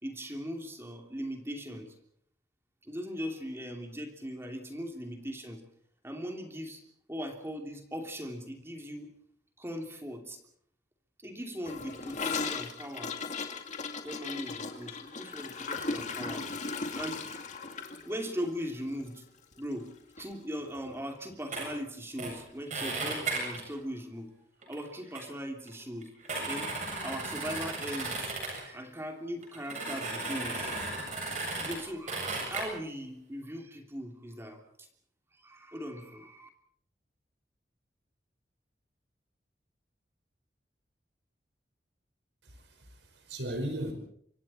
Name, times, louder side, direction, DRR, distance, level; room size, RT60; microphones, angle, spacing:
voice 1, 0.0-1.9 2.8-5.6 6.0-6.8 7.1-9.1 9.6-10.4 11.2-13.1 14.0-16.5 16.9-17.2 17.5-17.6 18.0-19.2 19.6-19.9 20.1-24.3 24.7-26.7 27.0-30.7 31.5-34.9 35.4-36.5, equal, 15° right, 3 dB, 3.2 m, -39 dB
Gurgling / Toilet flush, 11.6-19.9 20.2-20.3 20.6-21.0 21.3-21.4 21.7-21.8 22.8-22.9, left 4 dB, 45° left, 2.3 m, -37 dB
sound 1, 21.5-21.7 22.2-22.3 22.7-23.6 24.6-24.8 25.1-25.2 25.7-25.8 26.0-28.7 29.4-31.8 32.1-32.7, right 3 dB, 45° right, 7.8 m, -35 dB
voice 2, 42.4-43.9, right 1 dB, 85° right, 6 dB, 5.4 m, -37 dB
28.0 x 25.5 x 4.5 m, 0.65 s
head